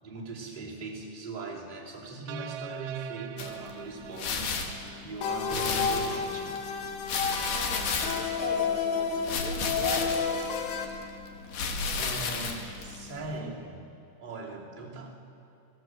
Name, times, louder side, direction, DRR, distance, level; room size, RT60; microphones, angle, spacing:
voice 1, 0.0-6.5 12.0-13.9 14.2-15.1, right 3 dB, 10° right, -5 dB, 2.7 m, -40 dB
sound 1, 2.3-5.6, right 10 dB, 80° right, 2.7 m, -43 dB
sound 2, 3.4-13.4, left 5 dB, 60° left, 3.0 m, -34 dB
sound 3, 5.2-10.9, left 6 dB, 80° left, 3.5 m, -31 dB
voice 2, 7.2-10.2, right 5 dB, 55° right, -1 dB, 2.5 m, -41 dB
26.0 x 16.5 x 7.9 m, 2.8 s
omnidirectional pair, 4.7 m